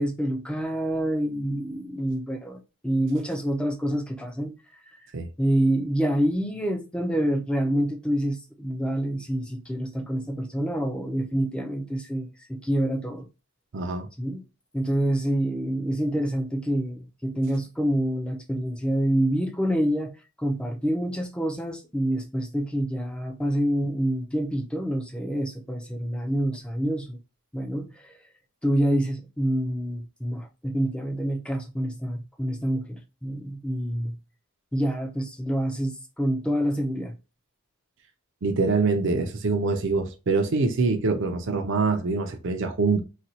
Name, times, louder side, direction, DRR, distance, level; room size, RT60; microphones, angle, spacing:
voice 1, 0.0-4.5 4.8-5.0 5.4-13.3 14.2-14.4 14.7-20.1 20.4-27.2 27.5-28.1 28.6-34.2 34.7-37.2, right 1 dB, 5° left, 0.5 m, -27 dB
voice 2, 13.7-14.1 38.4-43.0, right 4 dB, 55° right, 0.5 m, -24 dB
4.1 x 2.2 x 2.7 m
head